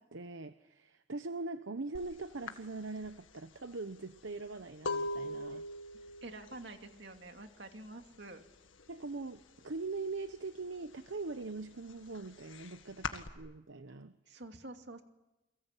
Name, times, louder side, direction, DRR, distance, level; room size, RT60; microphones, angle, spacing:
voice 1, 0.0-5.6 8.9-14.4, right 3 dB, 75° right, 10 dB, 0.9 m, -42 dB
sound 1, 1.9-2.1 2.5-8.1 8.4-8.9 9.2-10.3 10.7-13.3, left 2 dB, 75° left, 1.9 m, -41 dB
voice 2, 6.2-8.4 13.1-13.2 14.3-15.0, right 2 dB, 55° right, 5 dB, 2.6 m, -48 dB
29.0 x 23.5 x 8.4 m, 0.99 s
head